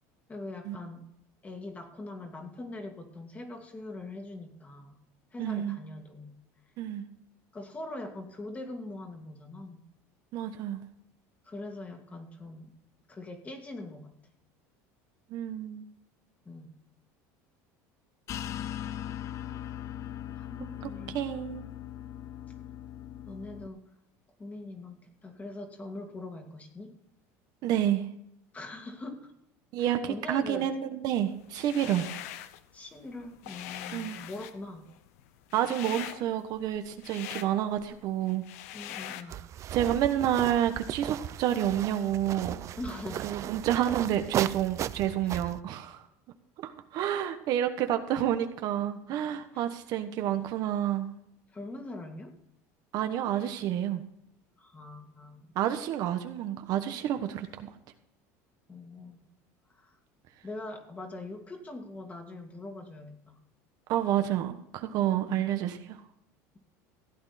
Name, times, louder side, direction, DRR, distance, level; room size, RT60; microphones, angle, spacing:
voice 1, 0.3-1.0 1.4-5.0 5.3-6.4 7.5-9.8 11.4-12.7 13.1-14.1 16.5-16.8 20.4-21.2 23.3-23.8 24.4-26.9 28.5-29.3 29.8-30.7 31.8-32.0 32.7-34.9 38.7-39.4 42.8-43.5 45.3-45.5 49.5-49.7 51.5-52.3 54.6-55.5 58.7-59.2 59.7-60.0 60.4-63.4 65.3-65.5, left 2 dB, 20° left, 4 dB, 2.2 m, -42 dB
voice 2, 5.4-5.8 6.8-7.0 10.3-10.8 15.3-15.9 21.1-21.6 27.6-28.0 29.7-32.1 33.9-34.2 35.5-38.4 39.7-42.6 43.2-46.0 46.6-51.1 52.9-54.0 55.5-57.7 63.9-66.0, right 11 dB, 55° right, 7 dB, 1.2 m, -29 dB
sound 1, 18.3-23.7, left 11 dB, 40° left, 0.5 m, -39 dB
sound 2, 31.5-32.6 33.0-39.2, left 12 dB, 90° left, 0.9 m, -43 dB
sound 3, 39.3-45.6, right 11 dB, 40° right, 0.5 m, -36 dB
15.5 x 8.9 x 4.2 m, 0.78 s
supercardioid pair, 130°, 8 cm